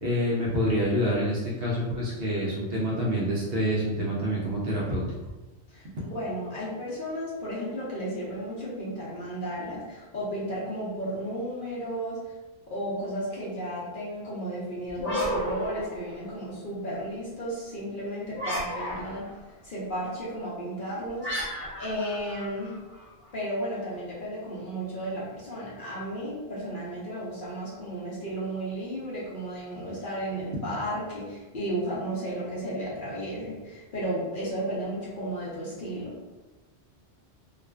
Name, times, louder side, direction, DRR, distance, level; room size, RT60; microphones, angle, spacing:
voice 1, 0.0-5.0, equal, 60° right, -4 dB, 0.7 m, -27 dB
voice 2, 5.7-12.3 12.7-19.3 19.6-22.7 23.3-36.2, right 1 dB, 50° left, -7 dB, 0.8 m, -34 dB
sound 1, 14.9-16.5 18.3-19.4 21.2-23.1, equal, 10° left, 0.8 m, -33 dB
2.4 x 2.2 x 2.2 m, 1.1 s
omnidirectional pair, 1.2 m